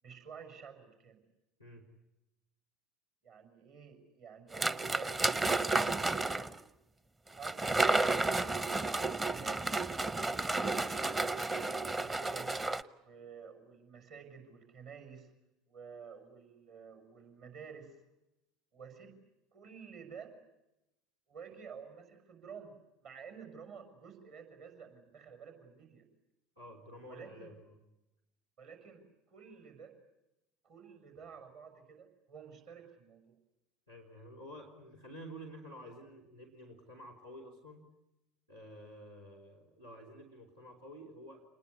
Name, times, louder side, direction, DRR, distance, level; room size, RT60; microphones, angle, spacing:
voice 1, 0.0-1.2 3.2-6.5 7.4-8.3 8.8-9.8 10.4-11.2 11.7-12.5 13.0-15.3 15.7-18.0 18.7-19.2 19.5-20.3 21.3-26.0 27.1-27.5 28.6-29.9 30.6-33.4, right 6 dB, 55° right, 6 dB, 6.1 m, -51 dB
sound 1, 4.5-6.6 7.4-12.8, right 2 dB, 20° right, 1.0 m, -32 dB
voice 2, 26.6-27.8 33.9-37.8 38.5-41.4, equal, 90° right, -2 dB, 3.6 m, -50 dB
27.5 x 20.5 x 9.7 m, 0.92 s
figure-of-eight pair, 65°, 0 cm